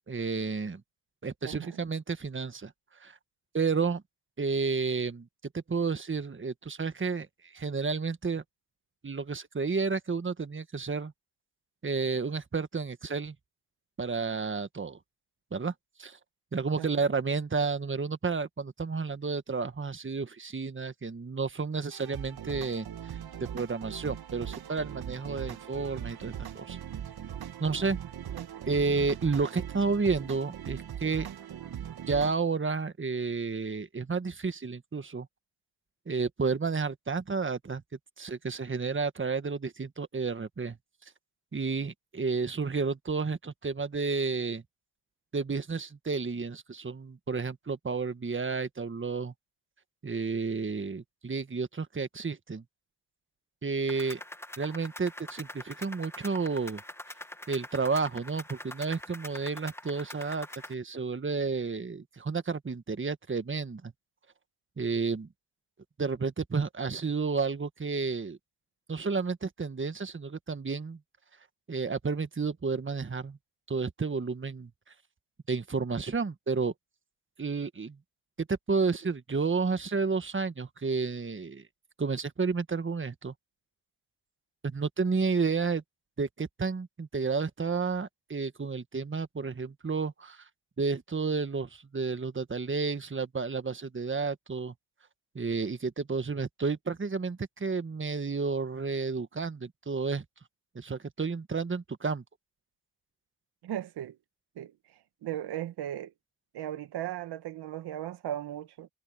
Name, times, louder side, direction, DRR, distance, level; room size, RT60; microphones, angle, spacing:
voice 1, 0.1-0.8 1.2-2.7 3.0-3.2 3.5-4.0 4.4-5.3 5.5-7.3 7.5-8.4 9.0-11.1 11.8-13.3 14.0-15.0 15.5-15.7 16.0-16.2 16.5-22.9 23.5-26.8 27.6-28.0 28.7-31.3 32.1-35.3 36.1-37.8 38.2-40.8 41.5-44.6 45.3-49.3 50.0-52.6 53.6-54.2 54.6-56.8 57.5-63.9 64.8-65.3 66.0-68.4 68.9-71.0 71.7-73.4 73.7-74.7 75.5-76.7 77.4-78.0 78.4-81.6 82.0-83.3 84.6-85.8 86.2-90.4 90.8-94.7 95.3-100.2 100.7-102.2, right 4 dB, 30° right, 1.7 m, -31 dB
voice 2, 1.4-1.8 16.8-16.9 28.3-28.7 103.6-104.2 104.6-106.1 106.5-108.9, right 11 dB, 85° right, 1.8 m, -37 dB
sound 1, 21.9-32.3, right 10 dB, 70° right, 1.5 m, -40 dB
sound 2, 53.9-60.7, left 1 dB, 5° left, 1.4 m, -44 dB
supercardioid pair, 50°, 39 cm